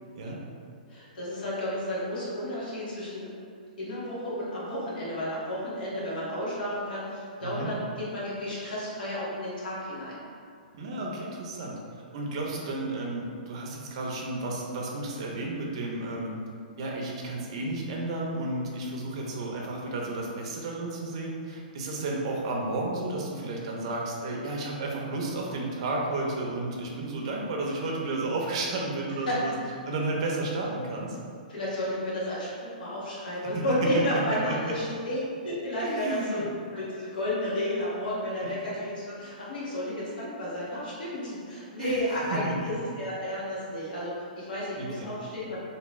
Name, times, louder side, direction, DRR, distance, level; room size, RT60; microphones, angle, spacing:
voice 1, 0.9-3.3 3.8-10.2 29.3-29.4 31.5-36.4 36.7-45.6, left 1 dB, 70° left, -8 dB, 1.4 m, -32 dB
voice 2, 7.4-7.7 10.7-11.8 12.1-16.3 16.8-29.5 29.9-31.2 33.3-33.4 33.9-34.5 35.8-36.4 38.4-38.6 41.1-41.4 41.8-42.0 42.3-42.7 44.8-45.1, right 2 dB, 40° right, -2 dB, 0.6 m, -32 dB
3.5 x 2.8 x 3.0 m, 2.3 s
hypercardioid pair, 175°, 5 cm